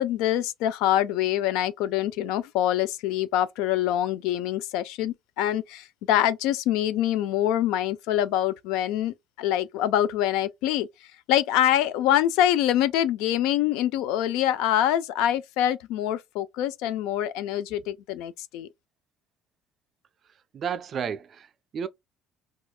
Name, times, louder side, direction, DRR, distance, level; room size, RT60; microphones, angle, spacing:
voice 1, 0.0-10.9 11.3-18.7, left 12 dB, 80° left, 0.4 m, -25 dB
voice 2, 20.5-21.9, right 7 dB, 30° right, 0.3 m, -32 dB
4.2 x 2.3 x 2.3 m
cardioid pair, 175°, 0 cm